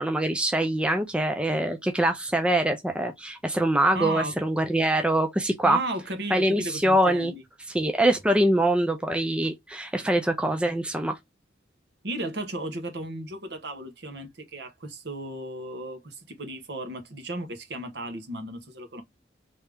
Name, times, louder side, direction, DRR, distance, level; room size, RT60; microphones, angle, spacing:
voice 1, 0.0-5.8 6.3-7.3 7.7-11.2, right 1 dB, 5° right, 0.4 m, -24 dB
voice 2, 3.9-4.3 5.6-7.4 12.0-19.0, right 2 dB, 60° right, 1.0 m, -34 dB
3.4 x 2.7 x 3.4 m
head